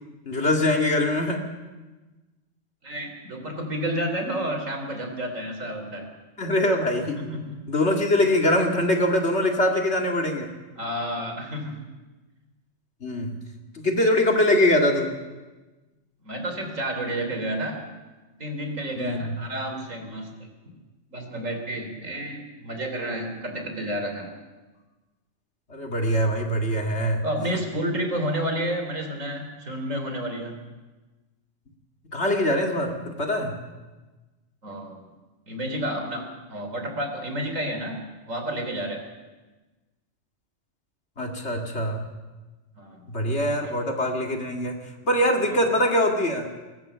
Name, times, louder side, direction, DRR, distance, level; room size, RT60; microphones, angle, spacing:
voice 1, 0.3-1.4 6.4-7.2 7.7-10.5 13.0-13.3 13.7-15.1 19.0-19.4 25.7-27.2 32.1-33.6 41.2-42.1 43.1-44.8 45.0-46.5, left 1 dB, 55° left, 2 dB, 2.5 m, -23 dB
voice 2, 2.8-6.1 7.2-7.6 10.8-11.8 16.2-17.8 18.4-20.5 21.1-24.3 27.2-30.6 34.6-35.1 35.5-39.0 42.8-43.1 43.6-43.7 45.4-45.6, equal, 80° right, 4 dB, 3.9 m, -30 dB
21.5 x 19.0 x 6.9 m, 1.2 s
omnidirectional pair, 1.3 m